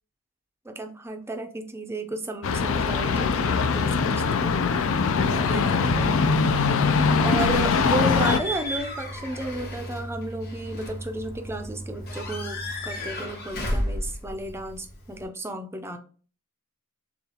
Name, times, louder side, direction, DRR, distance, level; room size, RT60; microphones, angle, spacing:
voice 1, 0.6-4.7 5.3-6.2 7.2-16.0, right 2 dB, 10° right, 6 dB, 0.5 m, -33 dB
sound 1, 2.4-8.4, left 5 dB, 60° left, 0.4 m, -22 dB
Slam / Squeak / Alarm, 7.3-15.2, equal, 45° left, 1.5 m, -33 dB
6.8 x 2.4 x 2.8 m, 0.41 s
head